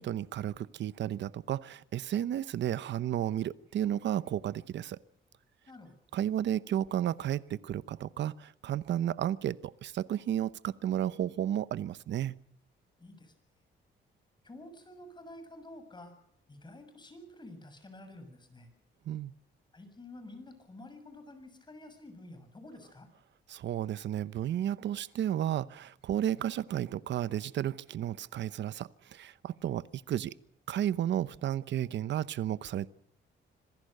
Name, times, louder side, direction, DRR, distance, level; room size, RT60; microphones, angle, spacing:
voice 1, 0.0-5.0 6.1-12.3 19.1-19.3 23.5-30.3 30.7-32.9, right 11 dB, 70° right, 17 dB, 0.9 m, -33 dB
voice 2, 13.0-13.3 14.4-16.1 16.5-18.7 19.7-23.1, left 1 dB, 25° left, 8 dB, 6.9 m, -50 dB
26.0 x 16.5 x 6.6 m, 0.76 s
cardioid pair, 100°, 20 cm